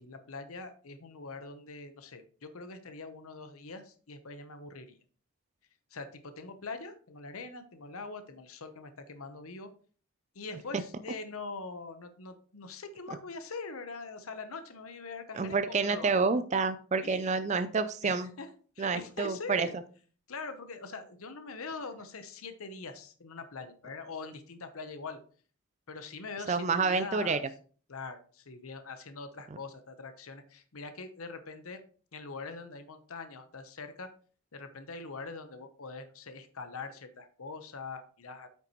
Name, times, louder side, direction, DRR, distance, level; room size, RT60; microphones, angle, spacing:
voice 1, 0.0-5.0 5.9-9.7 10.3-15.6 15.8-16.2 17.0-17.3 18.0-18.5 18.8-19.7 20.3-25.2 25.9-27.4 27.9-31.8 32.1-34.1 34.5-38.5, left 4 dB, 75° left, 9 dB, 0.9 m, -43 dB
voice 2, 15.3-18.3 18.8-19.7 26.5-27.4, right 4 dB, 30° right, 11 dB, 0.4 m, -28 dB
9.1 x 5.8 x 3.0 m, 0.42 s
head